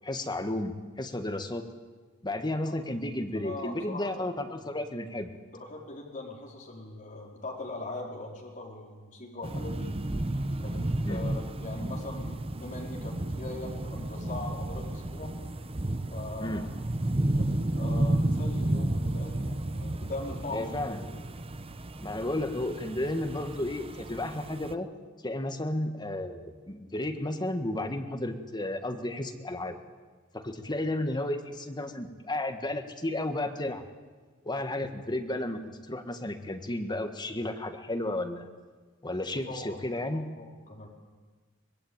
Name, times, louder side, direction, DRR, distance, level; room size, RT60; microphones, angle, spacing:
voice 1, 0.0-1.6 2.2-5.3 11.0-11.2 16.4-16.6 20.5-21.0 22.0-24.9 25.2-29.8 30.3-33.8 34.4-35.6 35.9-38.5 39.0-40.3, left 1 dB, 20° left, 6 dB, 1.7 m, -33 dB
voice 2, 3.3-4.1 4.6-4.7 5.5-9.9 10.6-15.3 16.1-16.7 17.4-21.0 39.5-39.8 40.1-40.9, left 2 dB, 40° left, -1 dB, 4.6 m, -41 dB
sound 1, 9.4-24.7, right 1 dB, 30° right, 0.9 m, -32 dB
24.5 x 20.0 x 8.9 m, 1.4 s
head